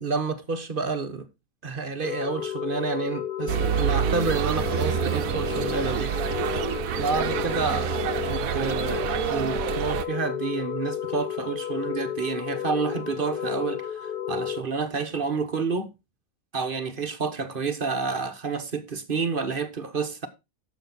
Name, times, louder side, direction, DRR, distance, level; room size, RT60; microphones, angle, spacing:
voice 1, 0.0-1.2 1.6-6.1 7.0-7.9 8.3-15.9 16.5-20.3, right 4 dB, 40° right, 1.2 m, -29 dB
sound 1, 2.0-14.6, left 10 dB, 60° left, 0.5 m, -32 dB
sound 2, 3.5-10.1, right 11 dB, 70° right, 1.1 m, -28 dB
11.5 x 7.4 x 4.0 m
omnidirectional pair, 1.6 m